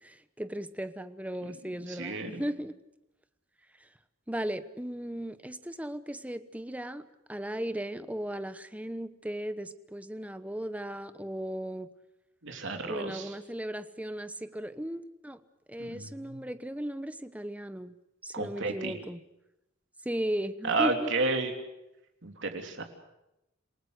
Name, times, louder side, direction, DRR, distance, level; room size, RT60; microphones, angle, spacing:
voice 1, 0.0-2.8 4.3-11.9 12.8-15.4 15.7-18.0 18.2-19.2 20.0-21.1, right 1 dB, 5° right, 12 dB, 1.0 m, -36 dB
voice 2, 1.9-2.5 12.4-13.3 15.8-16.4 18.3-18.9 20.6-21.5 22.2-22.8, right 3 dB, 65° right, 4 dB, 3.4 m, -31 dB
28.0 x 18.5 x 8.1 m, 0.90 s
head